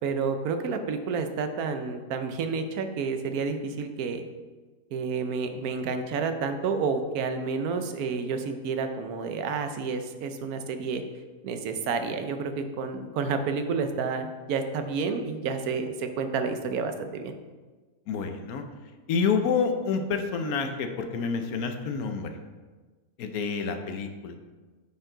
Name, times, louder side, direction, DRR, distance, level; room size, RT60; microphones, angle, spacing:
voice 1, 0.0-4.2 4.9-11.0 11.4-17.3, right 5 dB, 80° right, 7 dB, 1.2 m, -30 dB
voice 2, 18.1-18.6 19.1-22.4 23.2-24.4, left 5 dB, 80° left, 6 dB, 1.2 m, -28 dB
8.9 x 4.6 x 3.8 m, 1.3 s
omnidirectional pair, 1.6 m